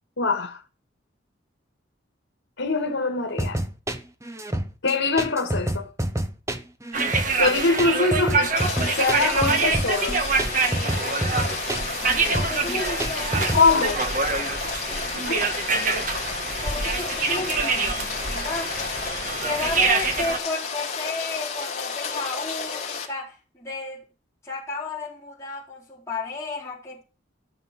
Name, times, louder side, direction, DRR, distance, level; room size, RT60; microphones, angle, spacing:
voice 1, 0.2-0.6 2.6-3.6 4.8-5.9 7.4-10.3 13.5-14.0 15.2-15.4, left 3 dB, 90° left, 2.0 m, -23 dB
sound 1, 3.4-13.7, right 1 dB, 15° right, 0.9 m, -28 dB
sound 2, 6.9-20.4, right 4 dB, 45° right, 1.5 m, -26 dB
Rain, 8.6-23.1, left 5 dB, 35° left, 3.1 m, -32 dB
voice 2, 12.4-14.6 16.6-18.8 19.4-24.0 24.4-27.0, left 3 dB, 15° left, 4.6 m, -33 dB
14.0 x 6.9 x 6.0 m
head